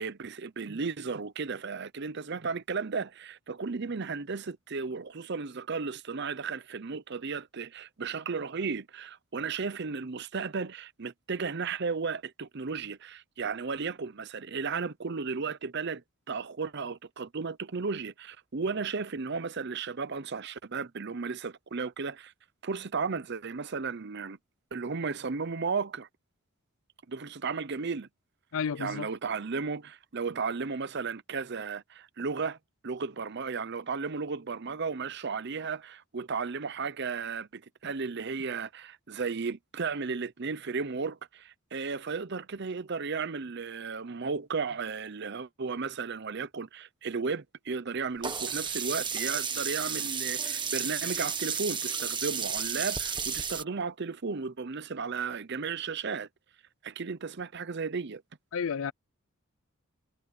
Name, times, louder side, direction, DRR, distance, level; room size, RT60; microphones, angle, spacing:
voice 1, 0.0-22.3 22.6-24.4 24.7-26.1 27.1-28.1 28.8-32.6 32.8-56.3 56.8-58.2, right 5 dB, 50° right, 0.7 m, -34 dB
voice 2, 28.5-29.1 58.5-58.9, left 6 dB, 65° left, 0.5 m, -31 dB
Sink (filling or washing), 48.2-53.6, right 6 dB, 20° right, 1.5 m, -32 dB
head